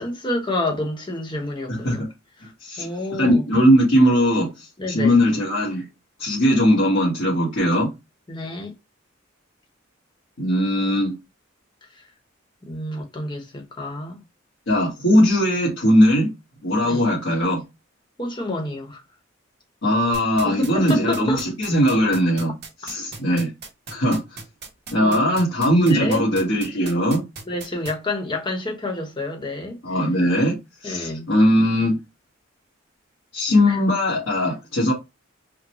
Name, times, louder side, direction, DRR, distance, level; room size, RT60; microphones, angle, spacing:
voice 1, 0.0-2.0 2.4-3.4 4.8-5.2 8.3-8.7 11.9-12.0 12.6-14.2 16.8-17.1 18.2-19.0 20.4-21.4 25.0-25.3 25.9-26.2 27.5-29.8 30.8-31.3 33.7-33.8, left 2 dB, 25° left, 1.0 m, -28 dB
voice 2, 1.7-2.1 2.4-2.9 3.2-4.5 4.9-5.8 6.2-7.9 10.4-11.1 14.7-16.3 16.6-17.6 19.8-22.5 22.8-23.5 23.9-24.2 24.9-27.2 29.8-30.6 30.8-32.0 33.3-34.9, equal, 80° left, 1.4 m, -19 dB
sound 1, 20.1-27.9, right 4 dB, 55° right, 1.2 m, -36 dB
3.8 x 2.1 x 3.0 m
head